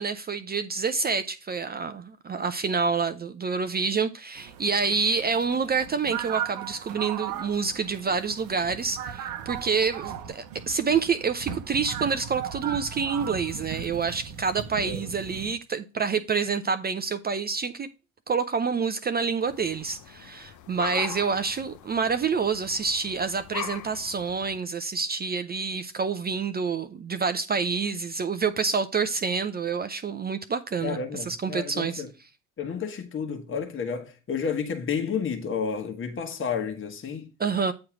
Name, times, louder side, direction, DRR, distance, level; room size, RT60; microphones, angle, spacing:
voice 1, 0.0-17.9 18.3-31.0 31.3-32.0 37.4-37.7, right 5 dB, 25° right, 0.5 m, -27 dB
sound 1, 4.4-15.5, right 9 dB, 65° right, 1.0 m, -37 dB
sound 2, 19.5-24.6, left 11 dB, 55° left, 0.7 m, -41 dB
voice 2, 30.8-32.1 32.6-37.3, left 6 dB, 35° left, 1.3 m, -31 dB
8.5 x 3.1 x 6.0 m
supercardioid pair, 80°, 37 cm